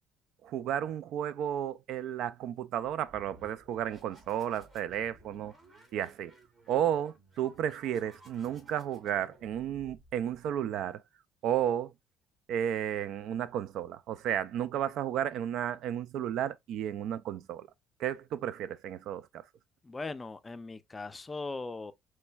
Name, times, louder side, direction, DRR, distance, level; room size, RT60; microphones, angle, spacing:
voice 1, 0.4-5.5 5.9-6.3 6.7-11.0 11.4-11.9 12.5-17.7 18.0-19.3, right 10 dB, 70° right, 0.3 m, -33 dB
sound 1, 3.0-10.5, right 2 dB, 35° right, 2.0 m, -58 dB
voice 2, 19.8-21.9, left 3 dB, 20° left, 0.4 m, -39 dB
4.3 x 3.2 x 2.2 m
cardioid pair, 110°, 0 cm